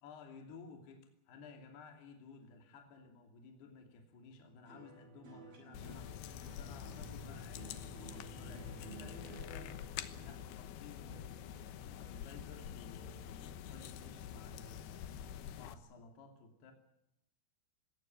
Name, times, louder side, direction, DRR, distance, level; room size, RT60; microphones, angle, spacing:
voice 1, 0.0-16.7, left 4 dB, 55° left, 4 dB, 4.5 m, -56 dB
sound 1, 4.7-13.1 13.4-14.1, right 4 dB, 45° right, 7.5 m, -55 dB
sound 2, 5.7-15.7, left 9 dB, 80° left, 2.4 m, -47 dB
21.0 x 17.0 x 9.0 m, 0.85 s
omnidirectional pair, 6.0 m